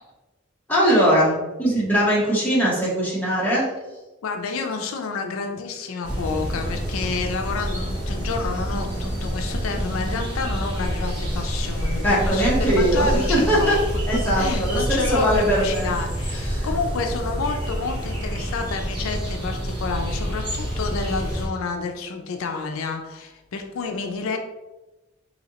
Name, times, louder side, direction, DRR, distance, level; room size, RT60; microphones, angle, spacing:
voice 1, 0.7-3.7 12.0-13.8 14.1-15.9 16.3-16.7, equal, 10° left, -7 dB, 0.9 m, -21 dB
voice 2, 4.2-13.8 14.1-24.4, left 4 dB, 80° left, 5 dB, 0.4 m, -29 dB
sound 1, 6.0-21.5, equal, 25° right, 0.9 m, -27 dB
4.0 x 2.8 x 2.8 m, 1.1 s
head